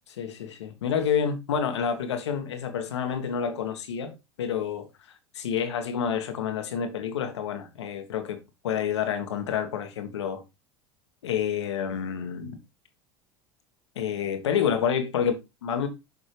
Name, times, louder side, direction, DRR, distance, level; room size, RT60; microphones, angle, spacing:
voice 1, 0.1-4.9 5.3-8.4 8.6-10.4 11.2-12.6 13.9-15.9, left 8 dB, 80° left, 1.4 m, -28 dB
7.3 x 5.4 x 3.2 m
hypercardioid pair, 80°, 14 cm